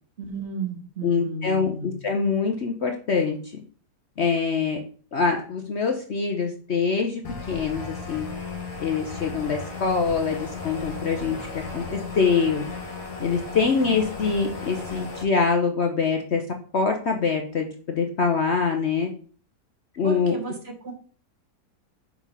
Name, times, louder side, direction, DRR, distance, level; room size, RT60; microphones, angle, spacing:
voice 1, 0.2-2.0 20.0-20.9, right 3 dB, 45° right, 3 dB, 1.5 m, -33 dB
voice 2, 1.0-3.6 4.2-4.8 5.1-7.2 7.5-8.3 8.8-12.6 13.2-16.4 16.7-19.1 19.9-20.4, left 5 dB, 50° left, 4 dB, 0.9 m, -24 dB
sound 1, 7.2-15.2, left 4 dB, 75° left, 2.2 m, -35 dB
5.4 x 4.9 x 5.5 m, 0.43 s
omnidirectional pair, 1.7 m